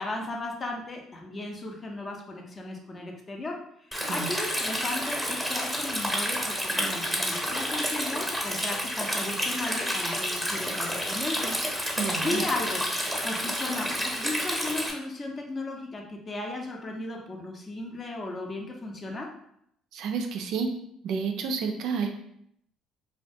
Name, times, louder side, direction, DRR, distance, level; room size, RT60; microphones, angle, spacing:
voice 1, 0.0-3.5 3.9-11.6 11.9-12.0 12.2-12.8 13.2-19.3, left 2 dB, 35° left, 1 dB, 0.6 m, -35 dB
Stream, 3.9-14.9, equal, 5° left, 0.8 m, -30 dB
voice 2, 12.0-12.5 19.9-20.7 21.0-22.1, right 5 dB, 65° right, 4 dB, 0.3 m, -30 dB
2.3 x 2.2 x 2.6 m, 0.73 s
hypercardioid pair, 55°, 0 cm